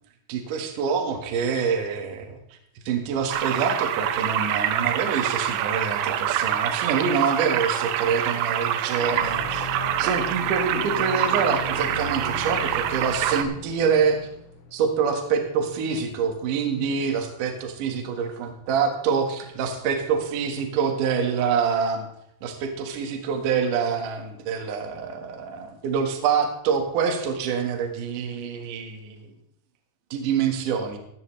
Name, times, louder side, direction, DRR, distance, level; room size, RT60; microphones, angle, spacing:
voice 1, 0.3-2.4 2.9-9.7 10.0-14.3 14.7-22.1 22.4-29.3 30.1-31.0, right 6 dB, 60° right, 4 dB, 2.4 m, -26 dB
sound 1, 3.3-13.4, right 10 dB, 85° right, 2.6 m, -26 dB
sound 2, 9.0-15.7, left 2 dB, 80° left, 3.7 m, -38 dB
15.5 x 11.0 x 3.2 m, 0.74 s
omnidirectional pair, 5.5 m